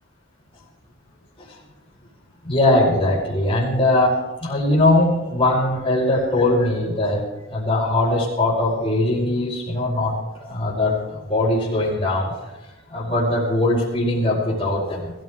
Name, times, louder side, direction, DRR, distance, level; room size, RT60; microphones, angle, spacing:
voice 1, 2.4-7.2 7.5-10.1 10.4-12.3 12.9-15.1, left 1 dB, 25° left, -10 dB, 4.6 m, -20 dB
21.5 x 14.5 x 3.6 m, 1.1 s
head